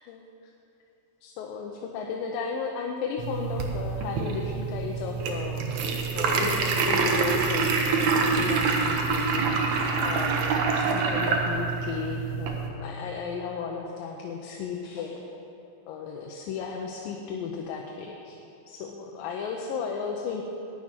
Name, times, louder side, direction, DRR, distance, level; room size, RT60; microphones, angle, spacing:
voice 1, 1.2-15.3 15.9-18.4 18.7-20.4, left 5 dB, 85° left, 1 dB, 2.5 m, -35 dB
sound 1, 3.2-12.7, right 4 dB, 70° right, 1.9 m, -26 dB
11.5 x 6.1 x 9.0 m, 3.0 s
omnidirectional pair, 4.0 m